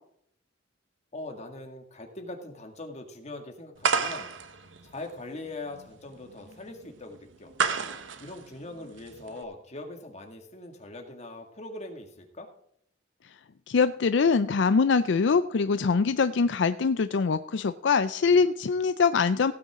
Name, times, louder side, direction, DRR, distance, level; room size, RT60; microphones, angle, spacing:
voice 1, 1.1-4.3 4.8-7.5 8.2-12.5, left 2 dB, 35° left, 4 dB, 2.1 m, -41 dB
sound 1, 3.8-9.4, right 5 dB, 85° right, 1.1 m, -32 dB
voice 2, 13.7-19.5, left 5 dB, 70° left, 12 dB, 0.5 m, -23 dB
16.5 x 9.5 x 3.7 m, 0.68 s
head